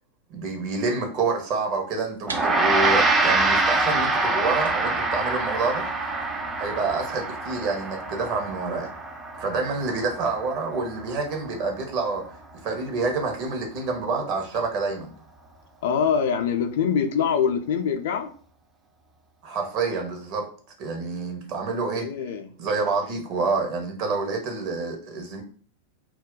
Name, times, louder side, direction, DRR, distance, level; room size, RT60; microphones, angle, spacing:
voice 1, 0.3-5.9 6.6-8.9 9.4-12.2 12.6-15.1 19.4-20.5 20.8-22.1 22.6-25.4, right 3 dB, 40° right, 2 dB, 0.8 m, -27 dB
sound 1, 2.1-7.2, right 4 dB, 75° right, 0.5 m, -44 dB
Gong, 2.3-11.8, right 3 dB, 15° right, 0.4 m, -25 dB
voice 2, 15.8-18.3 22.0-22.5, left 7 dB, 55° left, 6 dB, 0.4 m, -24 dB
2.3 x 2.2 x 3.7 m, 0.43 s
figure-of-eight pair, 90°, 0 cm